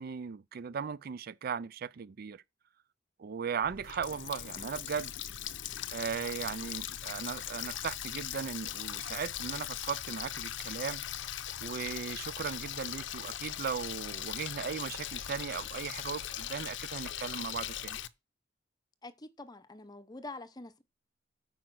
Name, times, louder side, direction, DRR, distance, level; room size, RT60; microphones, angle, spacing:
voice 1, 0.0-2.4 3.2-5.1 5.9-11.0 11.6-18.0, right 6 dB, 50° right, 0.4 m, -37 dB
Water tap faucet, 3.6-18.1, left 11 dB, 65° left, 0.6 m, -40 dB
voice 2, 19.0-20.8, left 2 dB, 20° left, 0.8 m, -46 dB
9.2 x 5.0 x 6.0 m
head